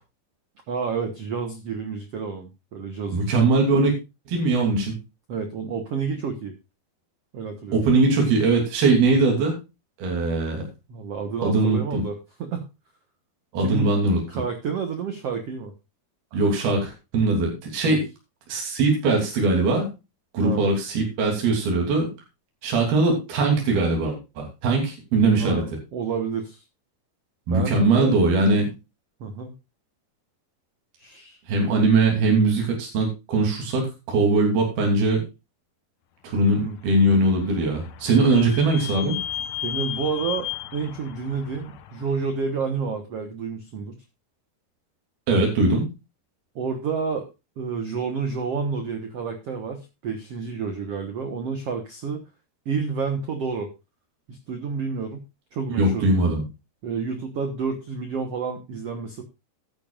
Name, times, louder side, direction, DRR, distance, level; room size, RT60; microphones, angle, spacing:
voice 1, 0.7-3.5 5.3-6.6 7.3-7.8 10.9-12.7 13.6-13.9 14.3-15.7 17.8-18.0 20.4-20.7 25.4-26.6 27.5-28.2 29.2-29.5 31.0-31.4 31.7-31.8 36.5-36.8 39.6-44.0 46.6-47.3 47.6-52.2 52.7-53.7 54.3-55.2 55.5-56.2 56.8-59.2, right 5 dB, 60° right, 5 dB, 1.8 m, -30 dB
voice 2, 3.1-3.9 4.3-5.0 7.7-9.6 10.0-10.6 11.4-12.1 13.5-14.2 16.3-18.1 18.5-19.9 20.3-22.1 22.6-25.6 27.5-28.7 31.5-35.2 36.2-39.2 45.3-45.9 55.8-56.4, right 3 dB, 80° right, 0 dB, 5.0 m, -21 dB
Vehicle / Squeak, 36.7-42.3, left 11 dB, 70° left, 1.8 m, -35 dB
14.0 x 10.5 x 2.5 m, 0.26 s
omnidirectional pair, 4.3 m